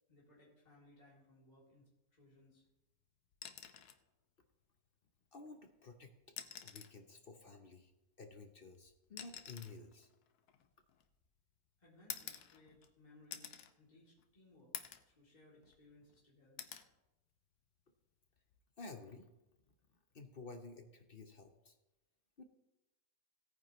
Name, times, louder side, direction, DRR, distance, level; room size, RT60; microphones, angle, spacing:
voice 1, 0.1-2.6 11.8-14.7 15.1-16.6, left 1 dB, 25° left, -6 dB, 3.1 m, -64 dB
sound 1, 3.3-4.0 5.5-5.6 6.2-7.0 8.2-11.3 12.1-12.9 13.3-13.7 14.2-14.3 14.7-15.1 15.6-16.2 16.6-16.9 18.4-18.6, left 9 dB, 80° left, 1.3 m, -49 dB
voice 2, 5.3-6.3 6.6-7.9 8.2-10.1 18.8-19.3 20.1-21.7 22.4-22.5, left 3 dB, 45° left, 6 dB, 0.8 m, -53 dB
17.0 x 9.3 x 3.1 m, 0.97 s
omnidirectional pair, 1.7 m